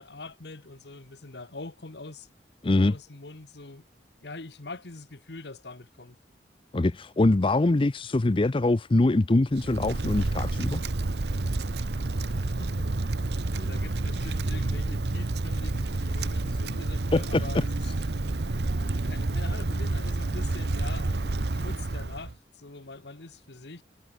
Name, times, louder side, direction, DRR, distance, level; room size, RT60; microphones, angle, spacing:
voice 1, 0.0-2.3 2.8-3.8 4.2-6.2 12.2-18.6 18.9-23.8, left 2 dB, 70° left, 1.5 m, -44 dB
voice 2, 2.6-3.0 6.7-10.8 17.1-17.6, left 2 dB, 30° left, 0.5 m, -23 dB
Wind, 9.5-22.3, right 2 dB, 70° right, 0.9 m, -29 dB
head